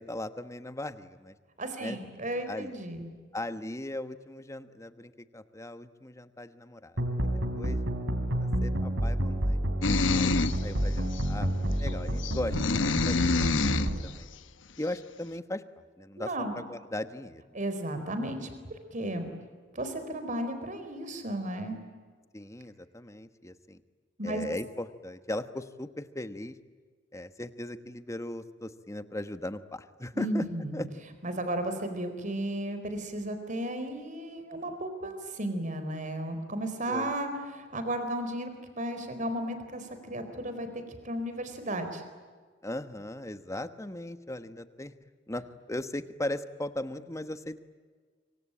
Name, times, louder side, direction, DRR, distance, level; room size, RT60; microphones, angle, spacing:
voice 1, 0.0-1.3 1.8-2.0 2.5-2.7 3.3-7.0 7.5-7.8 8.4-9.6 10.1-13.3 13.8-14.3 14.8-15.6 16.0-16.3 16.6-17.6 22.3-23.8 24.2-26.6 27.1-30.4 30.7-30.9 36.9-37.1 42.6-45.0 45.3-47.6, left 1 dB, 15° left, 11 dB, 1.2 m, -38 dB
voice 2, 1.6-3.1 16.2-16.6 17.5-18.5 18.9-19.3 19.7-21.8 24.2-24.4 30.1-30.8 31.2-42.0, right 1 dB, 40° right, 8 dB, 4.3 m, -34 dB
sound 1, 7.0-14.0, right 1 dB, 75° right, 3.5 m, -29 dB
sound 2, 9.8-10.6 11.2-11.3 12.2-13.9, left 3 dB, 80° left, 1.0 m, -27 dB
26.0 x 25.0 x 9.0 m, 1.5 s
head